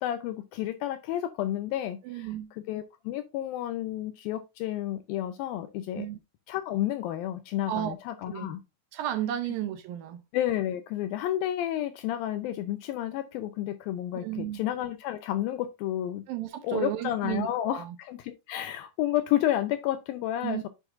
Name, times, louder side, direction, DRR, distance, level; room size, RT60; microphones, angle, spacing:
voice 1, 0.0-6.1 6.5-8.6 10.3-16.2 16.6-20.7, left 12 dB, 85° left, 2.1 m, -31 dB
voice 2, 2.0-2.5 6.0-6.2 7.7-8.0 8.3-8.5 8.9-10.2 14.1-14.7 16.3-18.0 20.4-20.7, right 12 dB, 80° right, 2.2 m, -33 dB
9.8 x 6.0 x 2.5 m
omnidirectional pair, 4.7 m